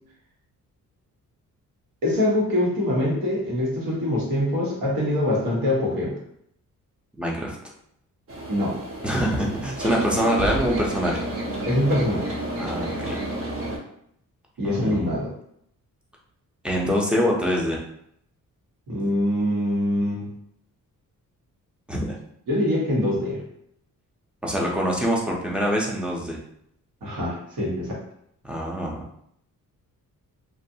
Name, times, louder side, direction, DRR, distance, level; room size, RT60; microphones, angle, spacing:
voice 1, 2.0-6.2 8.5-8.7 11.7-12.3 14.6-15.3 18.9-20.3 22.5-23.4 27.0-27.9, left 1 dB, 80° right, -4 dB, 1.1 m, -24 dB
voice 2, 7.2-7.6 9.0-11.2 12.6-13.2 14.6-15.2 16.6-17.8 21.9-22.2 24.4-26.4 28.4-29.0, equal, 5° right, -2 dB, 0.5 m, -25 dB
sound 1, 8.3-13.8, right 1 dB, 40° right, 0.7 m, -30 dB
2.5 x 2.3 x 2.6 m, 0.71 s
cardioid pair, 115°, 33 cm